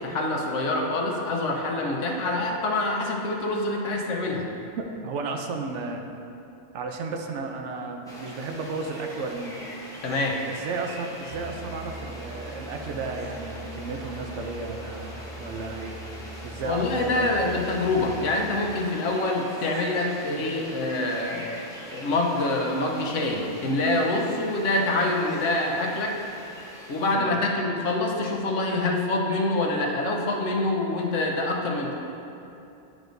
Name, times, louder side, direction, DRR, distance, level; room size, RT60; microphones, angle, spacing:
voice 1, 0.0-4.5 10.0-10.4 16.6-21.6 21.9-26.2 26.9-31.9, left 2 dB, 75° left, 1 dB, 1.1 m, -26 dB
voice 2, 4.8-6.0 6.7-9.6 10.3-16.0 16.4-17.4 20.3-20.4 27.1-27.4, right 3 dB, 70° right, 3 dB, 0.9 m, -33 dB
sound 1, 8.1-27.2, equal, 5° left, 0.7 m, -42 dB
sound 2, 11.3-19.0, right 2 dB, 25° right, 1.0 m, -42 dB
9.5 x 5.0 x 2.6 m, 2.8 s
omnidirectional pair, 1.3 m